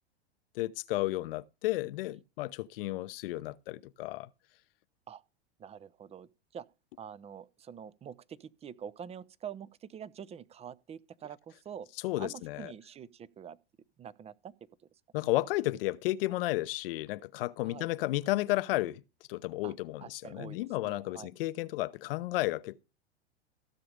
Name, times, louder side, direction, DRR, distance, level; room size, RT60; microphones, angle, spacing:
voice 1, 0.5-4.3 12.0-12.7 15.1-19.0 19.3-22.9, left 18 dB, 55° left, 0.8 m, -33 dB
voice 2, 5.6-6.7 7.0-11.9 12.2-13.6 14.0-14.5 17.6-17.9 19.6-19.7 20.0-21.3, right 8 dB, 20° right, 0.7 m, -46 dB
15.5 x 7.0 x 5.1 m
hypercardioid pair, 100°, 33 cm